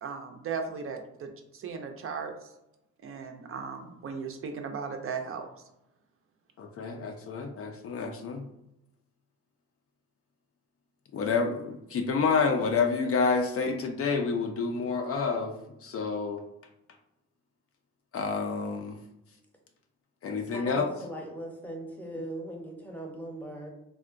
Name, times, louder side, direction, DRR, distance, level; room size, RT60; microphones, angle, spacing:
voice 1, 0.0-2.3 3.0-5.5, right 5 dB, 45° right, 5 dB, 0.5 m, -37 dB
voice 2, 6.6-8.5 11.1-15.5 15.8-16.4 18.1-19.0 20.2-20.9, left 4 dB, 50° left, 5 dB, 0.4 m, -28 dB
voice 3, 20.5-23.7, right 1 dB, 5° left, 0 dB, 0.7 m, -39 dB
3.6 x 2.1 x 2.5 m, 0.88 s
cardioid pair, 90°, 30 cm